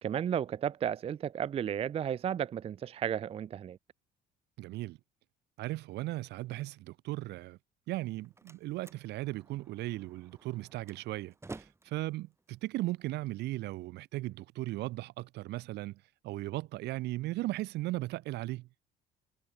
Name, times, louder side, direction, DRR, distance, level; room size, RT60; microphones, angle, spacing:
voice 1, 0.0-3.8, right 9 dB, 35° right, 0.4 m, -33 dB
voice 2, 4.6-5.0 5.6-7.6 7.9-18.7, right 18 dB, 85° right, 3.6 m, -37 dB
Slam, 7.9-13.9, right 3 dB, 15° right, 2.7 m, -53 dB
cardioid pair, 110°, 17 cm